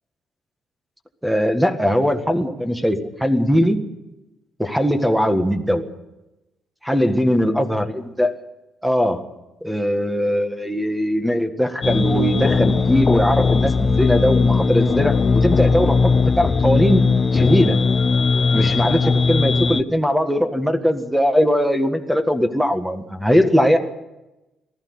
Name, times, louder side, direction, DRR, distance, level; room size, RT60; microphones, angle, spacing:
voice 1, 1.2-3.8 4.6-5.9 6.8-8.3 8.8-9.2 9.6-17.0 17.3-17.8 18.5-23.8, equal, 5° right, 7 dB, 1.7 m, -20 dB
sound 1, 11.8-19.8, left 4 dB, 35° left, 0.6 m, -18 dB
19.5 x 14.5 x 9.7 m, 0.99 s
cardioid pair, 135°, 0 cm